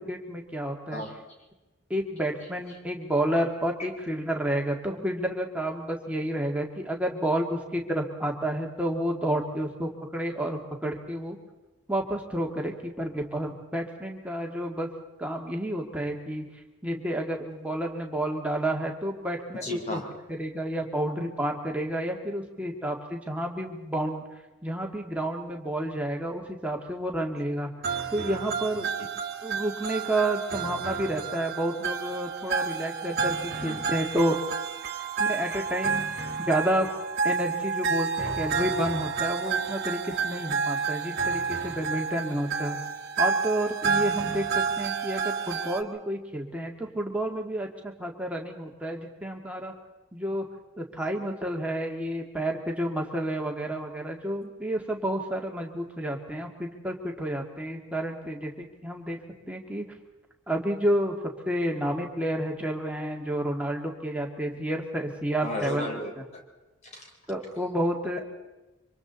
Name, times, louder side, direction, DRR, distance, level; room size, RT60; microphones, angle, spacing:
voice 1, 0.1-1.0 1.9-11.4 11.9-14.9 15.2-16.4 16.8-19.6 19.9-20.0 20.3-24.2 24.6-27.7 28.1-28.9 29.4-34.4 35.2-36.9 37.2-42.8 43.2-49.7 50.1-50.4 50.8-59.2 59.5-59.9 60.5-61.2 61.5-65.9 67.3-68.2, right 1 dB, 5° right, 1 dB, 2.0 m, -30 dB
voice 2, 19.5-20.1 28.7-28.8 33.6-33.8 38.3-38.4 65.4-66.4 66.9-67.1, left 1 dB, 35° left, 2 dB, 3.8 m, -34 dB
sound 1, 27.8-45.8, right 5 dB, 50° right, 1.5 m, -30 dB
27.0 x 25.0 x 4.1 m, 1.1 s
head